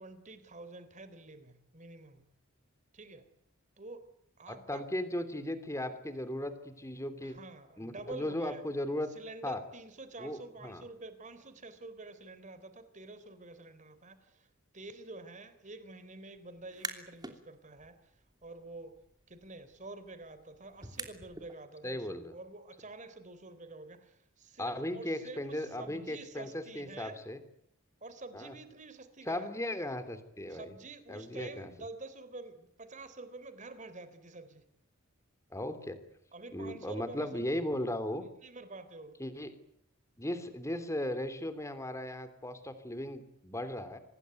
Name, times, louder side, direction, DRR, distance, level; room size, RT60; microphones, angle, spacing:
voice 1, 0.0-2.2 2.9-3.2 3.8-4.0 4.4-4.8 7.2-8.6 9.2-14.5 14.7-18.0 18.4-19.0 19.3-27.2 28.0-29.5 30.5-34.6 36.3-37.3 38.4-39.2, right 2 dB, 35° right, 12 dB, 3.6 m, -48 dB
voice 2, 4.5-7.4 7.8-9.1 9.4-9.6 10.2-10.8 21.8-22.3 24.6-27.4 28.3-28.5 29.2-30.7 31.1-31.7 35.5-36.0 36.5-38.2 39.2-39.5 40.2-44.0, left 1 dB, 15° left, 11 dB, 3.3 m, -37 dB
sound 1, 16.6-17.4 17.8-21.5, right 3 dB, 20° right, 3.1 m, -46 dB
26.0 x 20.5 x 9.4 m, 0.71 s
head